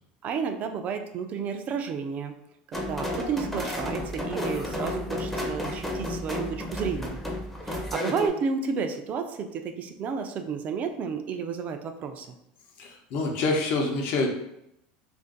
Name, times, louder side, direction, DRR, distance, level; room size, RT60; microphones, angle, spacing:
voice 1, 0.2-2.3 2.7-7.1 7.6-12.3, right 6 dB, 40° right, 6 dB, 0.4 m, -31 dB
sound 1, 2.7-8.3, left 1 dB, 5° left, 0.6 m, -32 dB
voice 2, 12.8-14.3, left 3 dB, 60° left, 2 dB, 0.7 m, -26 dB
2.5 x 2.5 x 3.8 m, 0.80 s
supercardioid pair, 125°, 4 cm